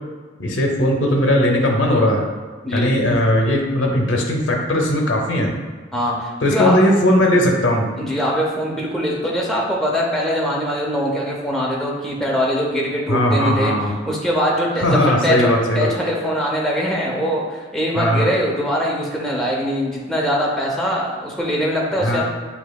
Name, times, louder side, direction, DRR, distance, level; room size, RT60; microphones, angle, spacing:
voice 1, 0.4-2.2 2.7-5.5 6.4-7.9 13.1-13.9 14.8-15.9 17.9-18.3 22.0-22.2, left 1 dB, 70° left, 0 dB, 0.7 m, -18 dB
voice 2, 5.9-6.8 8.0-13.7 14.1-22.2, equal, ahead, -4 dB, 0.6 m, -22 dB
6.3 x 2.8 x 2.3 m, 1.4 s
head